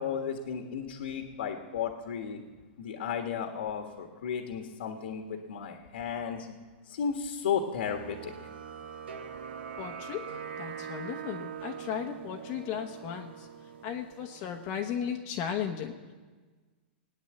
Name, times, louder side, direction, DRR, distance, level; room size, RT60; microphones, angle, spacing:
voice 1, 0.0-2.4 2.8-6.5 6.9-8.3, left 7 dB, 80° left, 4 dB, 1.6 m, -34 dB
sound 1, 7.8-14.7, right 7 dB, 80° right, 1.3 m, -42 dB
voice 2, 9.8-10.3 10.6-13.5 13.8-15.9, left 8 dB, 35° left, 3 dB, 1.0 m, -35 dB
19.0 x 9.6 x 8.0 m, 1.4 s
supercardioid pair, 160°, 6 cm